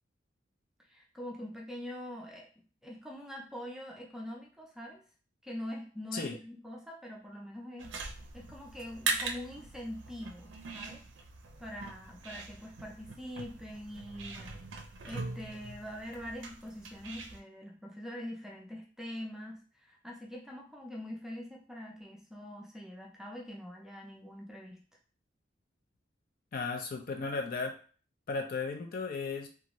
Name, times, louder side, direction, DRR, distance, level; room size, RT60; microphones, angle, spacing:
voice 1, 0.9-2.5 2.8-5.0 5.4-8.0 8.3-11.0 11.6-14.6 15.0-19.6 19.9-24.8, left 1 dB, 5° right, -1 dB, 0.5 m, -44 dB
sound 1, 7.8-17.4, right 4 dB, 85° right, 0.5 m, -41 dB
voice 2, 26.5-27.8 28.3-29.5, left 4 dB, 50° left, 3 dB, 0.5 m, -35 dB
2.6 x 2.4 x 3.0 m, 0.38 s
head